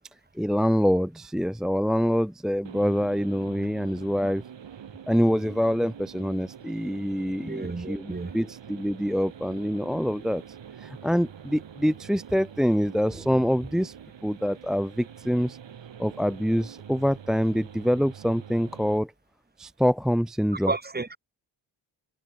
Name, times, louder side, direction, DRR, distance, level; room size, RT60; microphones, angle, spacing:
voice 1, 0.4-4.4 5.1-10.4 10.8-13.9 14.2-15.6 16.0-19.1 19.6-20.7, equal, ahead, 0.4 m, -25 dB
sound 1, 2.6-19.0, right 8 dB, 70° right, 2.1 m, -45 dB
voice 2, 7.5-8.3 20.7-21.2, right 3 dB, 20° right, 1.2 m, -31 dB
cardioid pair, 60°, 46 cm